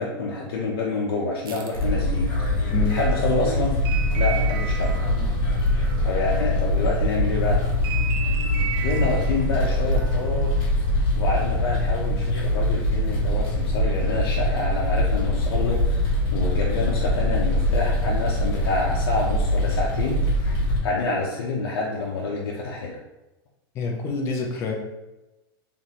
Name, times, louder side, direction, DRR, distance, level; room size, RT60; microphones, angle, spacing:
voice 1, 0.0-2.3 2.9-3.8 4.1-5.0 6.0-7.6 8.8-10.5 11.2-23.0, left 3 dB, 75° left, -3 dB, 0.8 m, -27 dB
sound 1, 1.5-7.0 7.3-10.6, right 8 dB, 65° right, 0.7 m, -36 dB
sound 2, 1.7-20.8, left 1 dB, 40° left, 1.3 m, -23 dB
voice 2, 23.7-24.7, left 5 dB, 20° left, 1 dB, 0.6 m, -26 dB
3.3 x 3.0 x 4.1 m, 1.0 s
supercardioid pair, 175°, 13 cm